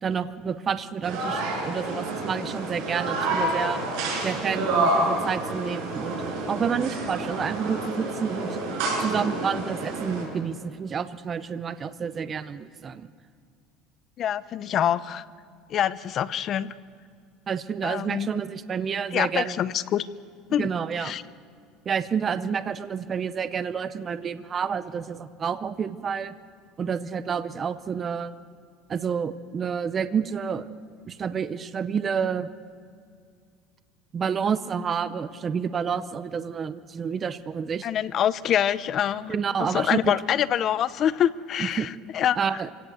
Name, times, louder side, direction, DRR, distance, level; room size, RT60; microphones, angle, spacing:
voice 1, 0.0-3.8 4.2-6.2 6.5-8.5 9.0-13.1 17.5-19.6 20.6-21.1 21.9-26.3 26.8-28.3 28.9-30.7 31.0-32.5 34.1-37.9 39.3-40.1 41.6-41.9 42.4-42.7, right 6 dB, 25° right, 14 dB, 0.6 m, -29 dB
sound 1, 1.0-10.2, right 2 dB, 65° right, 7.4 m, -28 dB
voice 2, 14.2-15.2 15.7-16.7 17.8-18.3 19.1-20.1 20.5-20.7 21.0-21.2 37.8-42.4, left 10 dB, 35° left, 17 dB, 0.7 m, -25 dB
26.0 x 17.0 x 7.9 m, 2.2 s
cardioid pair, 160°, 0 cm